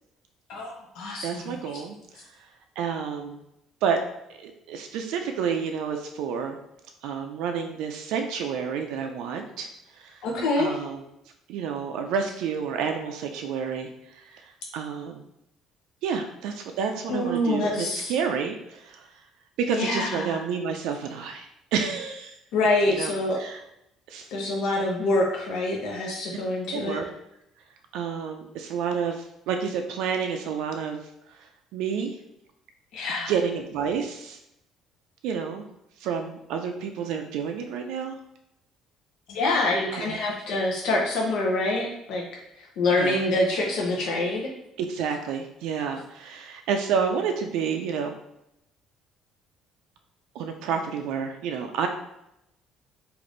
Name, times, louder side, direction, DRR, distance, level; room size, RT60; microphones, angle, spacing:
voice 1, 0.5-1.5 10.2-10.8 17.1-18.1 19.7-20.4 22.5-23.4 24.3-27.0 32.9-33.3 39.3-42.2 42.8-44.4, left 2 dB, 65° left, -2 dB, 0.7 m, -26 dB
voice 2, 1.2-2.5 2.8-3.4 3.8-4.0 4.3-6.6 7.0-10.3 10.6-11.0 11.5-15.3 16.0-19.2 19.7-22.4 22.9-23.6 24.1-24.3 26.7-27.1 27.9-31.0 31.3-32.2 33.3-34.4 35.2-35.6 36.0-38.2 39.9-40.2 42.9-43.2 44.8-48.2 50.3-51.9, right 6 dB, 80° right, 4 dB, 0.3 m, -30 dB
3.4 x 2.5 x 3.8 m, 0.81 s
cardioid pair, 165°, 0 cm